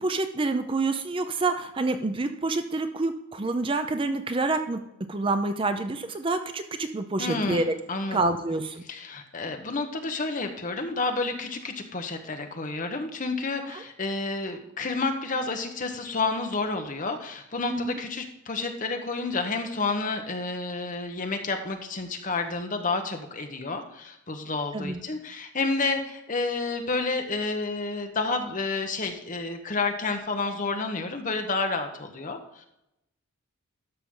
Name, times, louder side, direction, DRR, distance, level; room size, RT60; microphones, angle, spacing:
voice 1, 0.0-7.8 8.1-8.8 13.6-13.8 17.7-18.0 24.7-25.0, right 3 dB, 25° right, 8 dB, 0.5 m, -28 dB
voice 2, 7.2-7.6 7.9-8.2 8.9-32.7, left 3 dB, 40° left, 5 dB, 1.0 m, -30 dB
12.5 x 5.8 x 3.8 m, 0.85 s
head